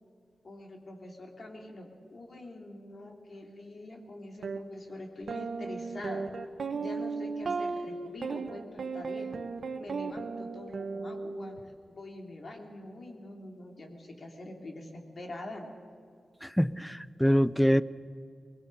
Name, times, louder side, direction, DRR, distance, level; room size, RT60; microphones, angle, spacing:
voice 1, 0.4-6.3 6.8-9.3 9.8-15.7, left 1 dB, 55° left, 2 dB, 3.1 m, -44 dB
sound 1, 4.4-4.6 5.3-11.6, right 4 dB, 75° right, 1.3 m, -35 dB
voice 2, 16.4-17.8, equal, 5° left, 16 dB, 0.6 m, -25 dB
24.5 x 20.5 x 5.6 m, 2.4 s
cardioid pair, 75°, 0 cm